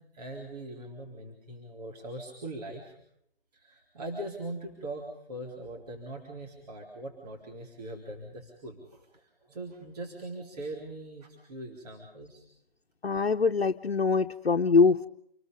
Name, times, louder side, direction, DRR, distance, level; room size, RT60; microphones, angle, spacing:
voice 1, 0.0-3.0 3.5-12.4, right 1 dB, 40° right, 0 dB, 4.1 m, -41 dB
voice 2, 13.0-15.1, left 4 dB, 75° left, 3 dB, 1.0 m, -23 dB
28.5 x 20.0 x 5.3 m, 0.71 s
figure-of-eight pair, 155°, 30 cm